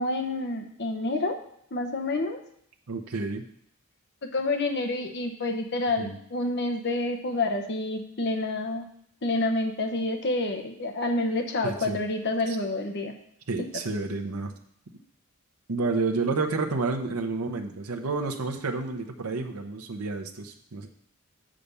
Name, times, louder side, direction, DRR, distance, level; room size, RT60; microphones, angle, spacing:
voice 1, 0.0-1.4 1.7-2.4 4.3-8.9 9.2-13.1 13.6-13.7, left 2 dB, 50° left, 4 dB, 0.9 m, -28 dB
voice 2, 2.9-3.4 6.0-6.1 11.6-12.0 12.5-12.6 13.5-14.5 15.7-20.9, right 3 dB, 90° right, 3 dB, 0.8 m, -30 dB
7.0 x 5.1 x 6.8 m, 0.69 s
head